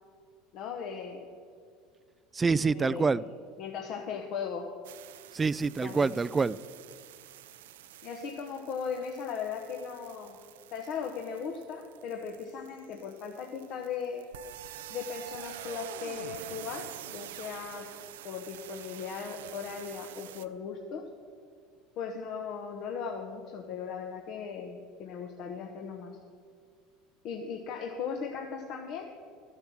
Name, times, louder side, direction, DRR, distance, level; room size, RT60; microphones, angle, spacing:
voice 1, 0.5-1.2 2.7-3.3 3.6-4.6 5.8-6.2 8.0-10.4 10.7-14.2 14.9-17.9 18.2-21.0 22.0-26.2 27.2-29.0, left 6 dB, 60° left, 2 dB, 1.1 m, -38 dB
voice 2, 2.3-3.2 5.3-6.6, right 4 dB, 20° right, 18 dB, 0.4 m, -26 dB
sound 1, 4.8-20.5, right 12 dB, 85° right, 0.5 m, -47 dB
13.0 x 8.0 x 7.1 m, 2.2 s
hypercardioid pair, 90°, 0 cm